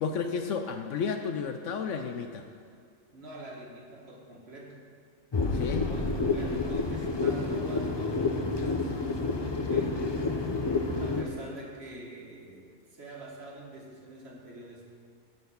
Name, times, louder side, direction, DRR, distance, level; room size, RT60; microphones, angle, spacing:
voice 1, 0.0-2.5 5.5-5.9, left 6 dB, 70° left, 6 dB, 0.8 m, -32 dB
voice 2, 3.1-4.9 5.9-10.0 11.0-14.9, right 2 dB, 45° right, -2 dB, 1.7 m, -45 dB
sound 1, 5.3-11.2, left 3 dB, 45° left, 0.3 m, -29 dB
12.0 x 4.3 x 6.9 m, 2.3 s
omnidirectional pair, 1.5 m